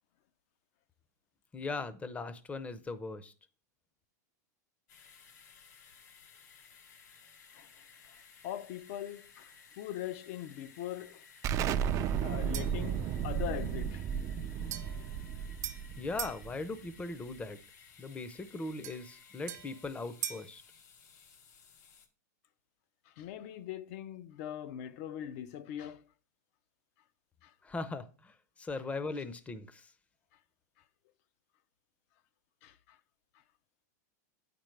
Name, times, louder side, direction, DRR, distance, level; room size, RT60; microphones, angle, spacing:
voice 1, 1.5-3.3 16.0-17.6 18.0-20.6 27.6-28.3 28.6-29.9, left 3 dB, 15° left, 0.6 m, -39 dB
sound 1, 4.9-22.1, left 6 dB, 75° left, 1.0 m, -58 dB
voice 2, 8.4-11.2 12.2-14.0 23.1-26.0 27.4-27.5 32.6-33.0, left 11 dB, 55° left, 0.6 m, -41 dB
Explosion, 11.4-16.9, right 8 dB, 35° right, 0.4 m, -34 dB
sound 2, 12.5-12.9 14.7-16.4 18.8-20.6, right 10 dB, 80° right, 0.9 m, -42 dB
8.6 x 5.2 x 3.3 m
hypercardioid pair, 120°, 9 cm